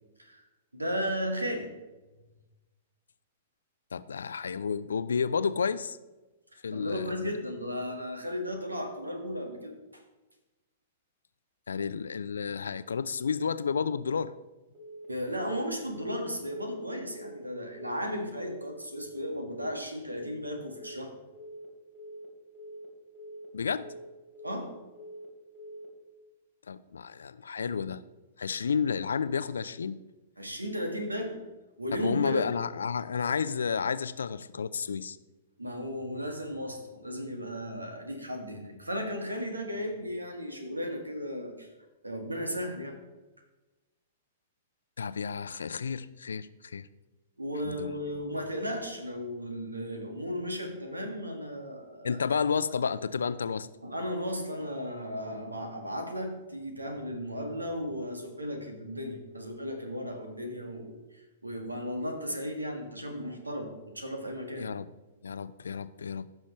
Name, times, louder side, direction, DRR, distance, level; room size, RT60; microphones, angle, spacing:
voice 1, 0.7-1.7 6.5-10.0 15.1-21.1 24.4-24.7 30.4-31.4 31.8-32.5 35.6-41.7 42.0-43.0 47.4-52.2 53.8-64.7, equal, 85° right, 4 dB, 1.6 m, -35 dB
voice 2, 3.9-6.0 6.6-7.3 11.7-14.3 23.5-23.9 26.7-28.0 28.4-30.0 31.9-35.2 45.0-46.9 47.6-48.0 52.0-53.7 64.6-64.9 65.2-66.3, left 6 dB, 70° left, 15 dB, 0.4 m, -31 dB
Telephone, 14.7-15.1 15.3-15.7 15.9-16.3 16.5-16.9 17.1-17.5 17.7-18.1 18.3-18.7 18.9-19.3 19.5-19.9 20.1-20.5 20.7-21.1 21.3-21.7 21.9-22.3 22.5-22.9 23.1-23.5 23.7-24.1 24.3-24.7 24.9-25.3 25.5-25.9, right 1 dB, 40° right, 3.0 m, -45 dB
15.0 x 6.3 x 3.2 m, 1.1 s
figure-of-eight pair, 105°, 0 cm